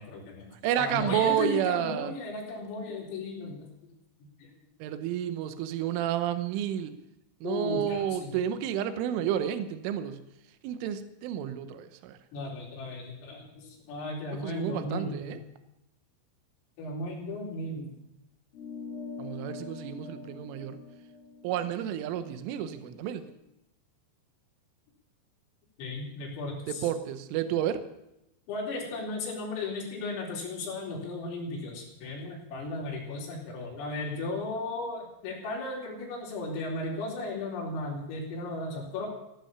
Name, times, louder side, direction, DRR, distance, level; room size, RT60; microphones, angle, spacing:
voice 1, 0.0-0.5 0.8-3.7 4.4-4.5 7.4-8.3 12.3-15.4 16.8-17.9 20.6-20.7 25.8-26.9 28.5-39.1, left 2 dB, 85° left, -3 dB, 6.7 m, -35 dB
voice 2, 0.6-2.1 4.8-6.9 7.4-10.2 10.6-12.2 14.4-15.4 19.2-20.8 21.4-23.3 26.7-27.9, right 10 dB, 85° right, 11 dB, 3.4 m, -30 dB
sound 1, 18.5-23.3, left 4 dB, 50° left, 3.1 m, -44 dB
15.5 x 13.0 x 6.9 m, 0.87 s
omnidirectional pair, 5.8 m